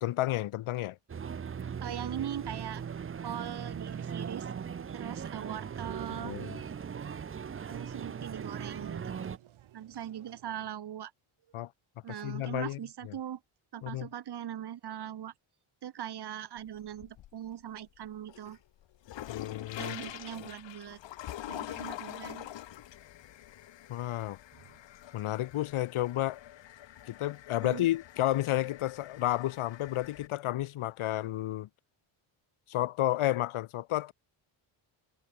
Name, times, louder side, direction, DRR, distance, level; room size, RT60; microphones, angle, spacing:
voice 1, 0.0-1.0 6.2-6.6 11.5-11.7 12.1-12.8 13.0-13.1 13.8-14.1 19.3-20.0 23.9-24.4 25.1-26.4 27.1-31.7 32.7-34.1, left 14 dB, 90° left, 2.4 m, -31 dB
sound 1, 1.1-9.4, right 7 dB, 25° right, 1.0 m, -39 dB
voice 2, 1.8-2.8 3.2-4.5 4.9-6.4 7.7-9.3 9.7-11.1 12.0-13.4 13.7-15.3 15.8-18.6 19.8-21.0 21.5-22.5 27.6-27.9, right 10 dB, 55° right, 4.3 m, -40 dB
sound 2, 2.1-10.7, right 12 dB, 75° right, 7.0 m, -59 dB
sound 3, 16.6-17.5 18.0-30.3, left 13 dB, 65° left, 2.0 m, -45 dB
cardioid pair, 180°, 48 cm